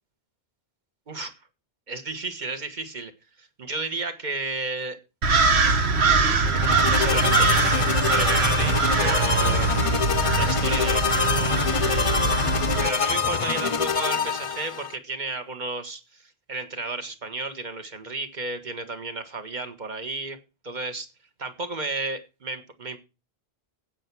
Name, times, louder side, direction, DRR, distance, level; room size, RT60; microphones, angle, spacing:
voice 1, 1.9-3.1 3.4-5.0 6.7-9.8 10.3-12.4 12.8-20.4 20.6-21.1 21.4-23.0, right 3 dB, 45° right, 1.5 m, -33 dB
sound 1, 5.2-12.9, right 4 dB, 85° right, 1.4 m, -22 dB
sound 2, 6.4-14.9, left 5 dB, 40° left, 0.6 m, -25 dB
8.9 x 8.5 x 6.1 m
omnidirectional pair, 1.1 m